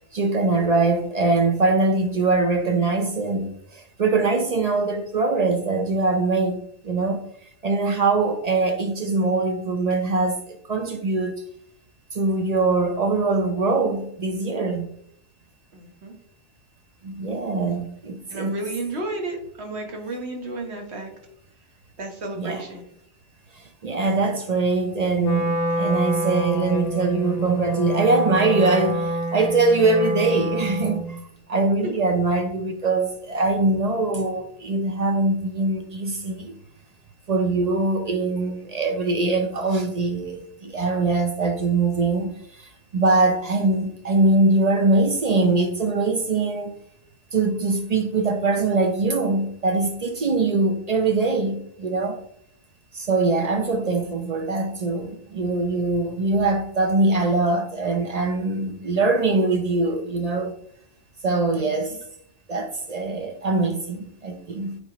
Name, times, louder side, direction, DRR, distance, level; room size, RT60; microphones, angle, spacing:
voice 1, 0.1-7.2 7.6-11.3 12.1-14.9 17.0-18.6 22.3-22.8 23.5-31.2 31.5-36.5 37.3-46.7 47.3-52.2 52.9-60.5 61.2-62.0 62.5-64.8, right 3 dB, 45° right, 0.5 m, -22 dB
voice 2, 15.7-16.1 18.3-21.1 22.0-22.8 40.9-41.0 61.6-61.9, right 2 dB, 60° right, 1.5 m, -33 dB
Wind instrument woodwind instrument, 25.2-31.2, right 1 dB, 40° left, 0.7 m, -27 dB
8.2 x 4.7 x 3.0 m
omnidirectional pair, 1.2 m